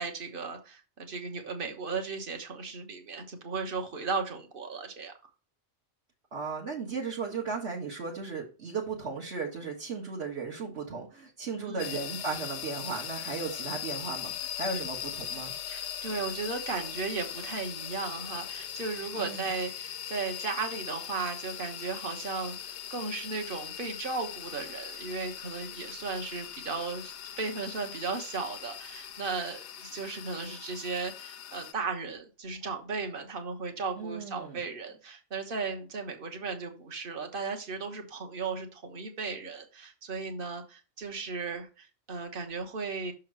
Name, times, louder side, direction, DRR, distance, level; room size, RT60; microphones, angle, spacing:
voice 1, 0.0-5.1 11.6-12.0 15.7-43.1, right 4 dB, 50° right, 4 dB, 1.4 m, -36 dB
voice 2, 6.3-15.5 19.2-19.5 34.0-34.6, right 4 dB, 65° right, -3 dB, 1.7 m, -36 dB
sound 1, 11.8-31.7, left 10 dB, 75° left, 0.9 m, -40 dB
6.4 x 3.7 x 6.0 m, 0.33 s
omnidirectional pair, 1.2 m